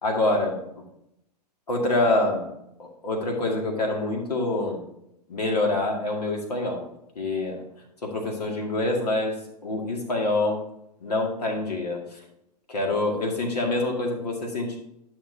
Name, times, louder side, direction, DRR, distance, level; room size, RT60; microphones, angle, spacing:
voice 1, 0.0-0.6 1.7-2.5 2.8-4.8 5.3-6.8 7.2-7.6 8.0-10.7 11.0-12.2 12.7-14.8, left 2 dB, 70° left, 1 dB, 2.2 m, -26 dB
11.0 x 6.0 x 2.8 m, 0.80 s
figure-of-eight pair, 105°, 21 cm